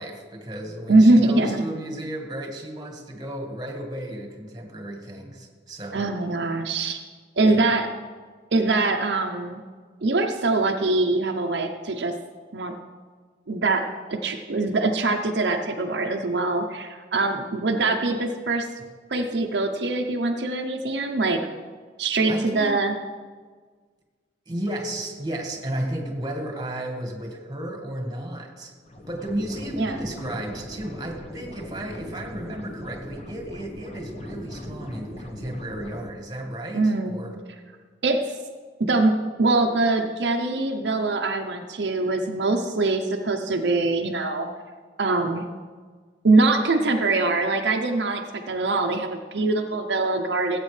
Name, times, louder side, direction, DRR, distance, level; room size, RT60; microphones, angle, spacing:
voice 1, 0.0-6.0 7.4-7.6 22.3-22.7 24.5-28.7 29.1-37.4, right 1 dB, 25° right, 2 dB, 1.6 m, -33 dB
voice 2, 0.9-1.6 5.9-7.0 7.4-7.9 8.5-9.6 10.0-12.1 12.5-12.7 13.5-13.8 14.1-18.7 19.1-21.4 22.0-22.9 29.8-30.0 36.7-37.2 38.0-38.4 38.8-39.1 39.4-44.5 45.0-45.4 46.2-50.6, right 2 dB, 70° right, 3 dB, 0.7 m, -23 dB
sound 1, 28.8-36.1, left 1 dB, 40° left, 1.1 m, -39 dB
17.0 x 8.3 x 3.3 m, 1.5 s
head